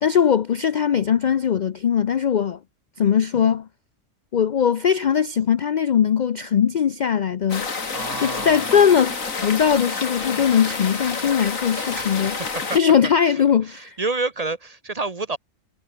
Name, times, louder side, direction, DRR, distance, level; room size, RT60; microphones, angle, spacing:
voice 1, 0.0-2.6 3.0-3.7 4.3-7.7 8.2-12.4 12.7-14.0, left 8 dB, 55° left, 0.5 m, -20 dB
sound 1, 7.5-12.8, left 4 dB, 90° left, 2.9 m, -29 dB
voice 2, 7.9-8.8 11.9-12.5 13.7-15.4, right 3 dB, 35° right, 0.9 m, -29 dB
omnidirectional pair, 1.4 m